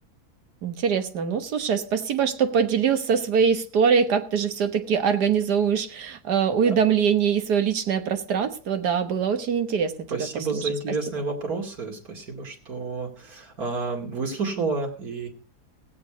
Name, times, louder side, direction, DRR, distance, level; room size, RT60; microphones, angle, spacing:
voice 1, 0.6-10.7, right 7 dB, 90° right, 8 dB, 1.8 m, -23 dB
voice 2, 10.1-15.3, right 3 dB, 65° right, 2 dB, 3.0 m, -30 dB
16.5 x 8.5 x 5.0 m, 0.40 s
omnidirectional pair, 1.7 m